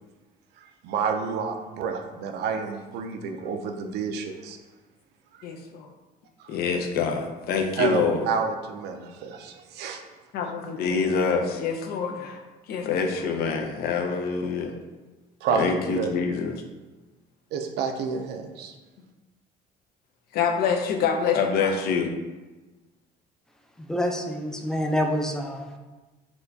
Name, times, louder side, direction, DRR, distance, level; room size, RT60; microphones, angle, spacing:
voice 1, 0.8-4.6 7.8-10.0 15.4-16.1 17.5-18.7, right 6 dB, 80° right, 4 dB, 0.4 m, -29 dB
voice 2, 5.4-5.9 6.5-8.2 10.3-12.4 12.7-14.7 15.5-16.5 20.3-22.1, left 5 dB, 65° left, 4 dB, 0.5 m, -26 dB
voice 3, 23.9-25.8, equal, 5° left, 3 dB, 0.3 m, -27 dB
4.2 x 2.2 x 2.6 m, 1.2 s
cardioid pair, 110°, 17 cm